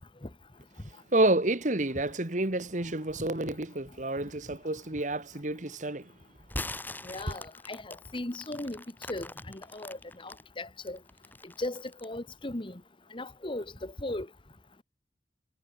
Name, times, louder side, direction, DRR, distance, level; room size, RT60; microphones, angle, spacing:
voice 1, 1.1-6.1, right 2 dB, 45° right, 1.7 m, -29 dB
sound 1, 6.4-10.4 10.9-12.2, left 2 dB, 10° left, 4.3 m, -41 dB
voice 2, 7.0-11.0 11.4-12.8 13.1-14.3, left 1 dB, 30° left, 1.3 m, -38 dB
head